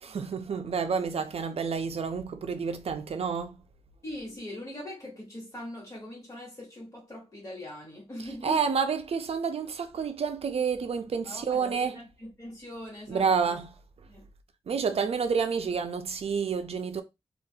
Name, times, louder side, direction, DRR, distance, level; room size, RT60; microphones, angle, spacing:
voice 1, 0.0-3.6 8.2-12.0 13.1-13.8 14.7-17.0, right 6 dB, 65° right, 0.4 m, -29 dB
voice 2, 4.0-8.6 11.2-13.6 14.1-14.3, left 1 dB, 30° left, 1.2 m, -41 dB
2.6 x 2.3 x 2.7 m
wide cardioid pair, 130°, 11 cm